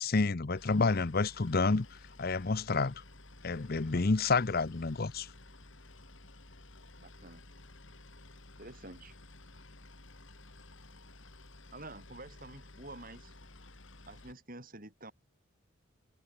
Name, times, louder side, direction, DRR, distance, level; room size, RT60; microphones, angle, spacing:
voice 1, 0.0-1.9 2.2-2.9 3.4-5.3, left 3 dB, 45° left, 0.7 m, -29 dB
Boat Water vehicle, 0.6-14.3, left 2 dB, 65° left, 3.9 m, -54 dB
voice 2, 7.0-7.4 8.6-9.2 11.7-13.4 14.1-15.1, right 2 dB, 40° right, 6.3 m, -49 dB
head